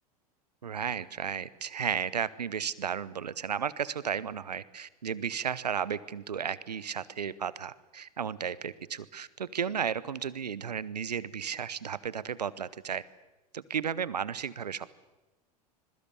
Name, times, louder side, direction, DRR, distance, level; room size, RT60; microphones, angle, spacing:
voice 1, 0.6-13.0 13.5-14.9, right 7 dB, 90° right, 18 dB, 0.9 m, -34 dB
26.5 x 21.5 x 7.0 m, 1.1 s
hypercardioid pair, 85°, 20 cm